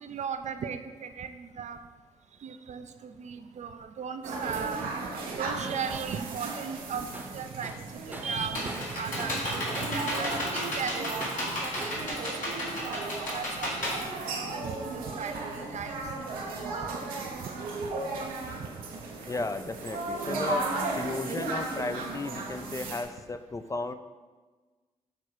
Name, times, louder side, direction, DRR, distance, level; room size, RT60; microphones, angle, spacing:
voice 1, 0.0-1.8 2.4-4.9 5.3-12.2 12.8-13.9 14.3-18.7 19.3-19.4, right 6 dB, 55° right, 9 dB, 0.5 m, -38 dB
sound 1, 4.2-23.0, right 3 dB, 80° right, 0.8 m, -36 dB
Tools, 7.1-7.4 7.6-9.5 9.7-10.6 11.2-12.1, right 1 dB, 10° right, 0.9 m, -42 dB
Computer keyboard, 8.0-14.9, left 1 dB, 65° left, 1.8 m, -34 dB
voice 2, 19.3-23.9, left 2 dB, 20° left, 9 dB, 0.5 m, -34 dB
6.7 x 3.1 x 4.5 m, 1.3 s
hypercardioid pair, 40°, 15 cm